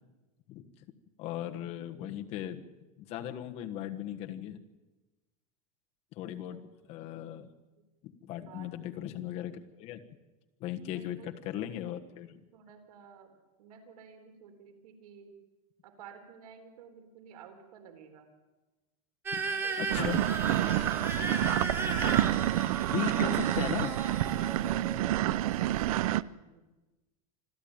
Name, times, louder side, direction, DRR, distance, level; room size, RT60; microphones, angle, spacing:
voice 1, 1.2-2.6 3.0-4.6 6.1-6.6 6.9-7.5 8.0-10.0 10.6-12.3 19.3-19.4 19.8-20.3 22.9-24.0, left 11 dB, 35° left, 5 dB, 1.4 m, -37 dB
voice 2, 6.3-6.6 8.4-8.7 10.9-11.3 12.5-15.3 15.8-18.3 19.4-20.2 24.6-26.6, right 7 dB, 85° right, 6 dB, 4.0 m, -53 dB
sound 1, 19.3-26.0, right 3 dB, 10° right, 1.7 m, -36 dB
sound 2, 19.9-26.2, right 14 dB, 70° right, 0.6 m, -28 dB
26.0 x 13.5 x 8.9 m, 1.1 s
supercardioid pair, 175°, 19 cm